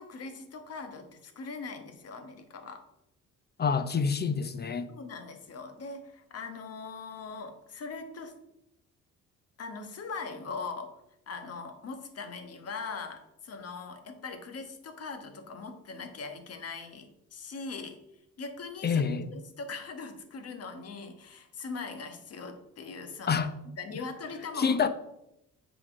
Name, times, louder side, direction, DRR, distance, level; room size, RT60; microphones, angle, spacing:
voice 1, 0.0-2.8 4.9-8.4 9.6-10.9 11.3-18.0 18.4-19.0 19.3-23.4 23.8-24.8, left 4 dB, 55° left, 1.4 m, -41 dB
voice 2, 3.6-4.9 18.8-19.3 23.3-23.5 24.6-24.9, left 5 dB, 35° left, 0.8 m, -27 dB
7.6 x 4.0 x 6.3 m
cardioid pair, 90°, 30 cm